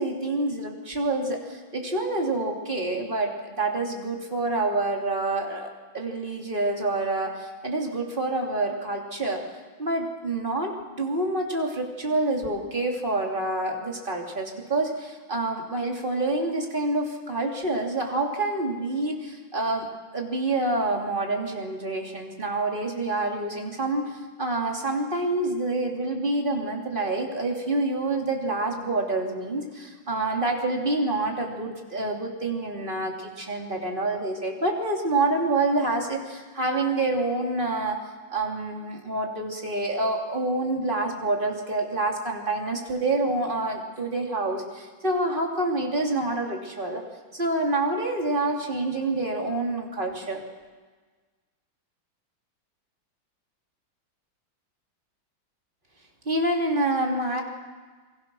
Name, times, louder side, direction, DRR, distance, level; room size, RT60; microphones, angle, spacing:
voice 1, 0.0-9.4 9.8-19.9 20.1-38.0 38.3-47.0 47.3-50.4 56.2-57.4, right 2 dB, 25° right, 0 dB, 3.1 m, -27 dB
28.0 x 23.0 x 6.3 m, 1.4 s
omnidirectional pair, 2.2 m